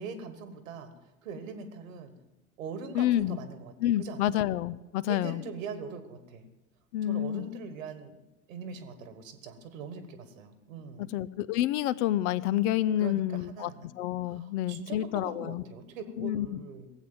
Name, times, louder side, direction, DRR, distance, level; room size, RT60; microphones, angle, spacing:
voice 1, 0.0-2.1 2.6-3.7 4.0-4.5 5.1-6.5 7.0-8.2 8.5-11.1 13.0-13.9 14.3-16.9, right 5 dB, 70° right, 10 dB, 1.6 m, -42 dB
voice 2, 2.9-3.4 3.8-5.4 6.9-7.5 11.1-13.7 14.0-15.6 16.2-16.6, left 13 dB, 55° left, 17 dB, 0.6 m, -28 dB
17.0 x 8.2 x 7.6 m, 0.99 s
figure-of-eight pair, 65°, 42 cm